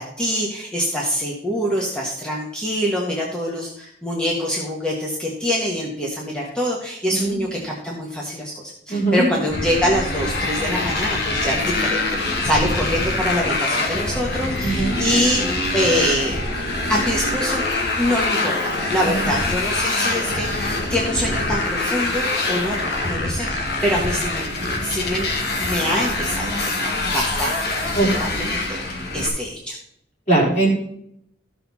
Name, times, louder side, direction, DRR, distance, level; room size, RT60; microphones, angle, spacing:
voice 1, 0.0-15.5 15.7-16.4 16.9-17.6 17.9-29.8, equal, 5° left, -4 dB, 1.4 m, -25 dB
voice 2, 8.9-9.2 14.6-15.0 28.0-28.1 30.3-30.7, right 2 dB, 35° left, -4 dB, 4.1 m, -19 dB
Motorcycle, 9.5-29.3, left 2 dB, 55° left, 1.8 m, -24 dB
14.0 x 6.8 x 4.2 m, 0.72 s
head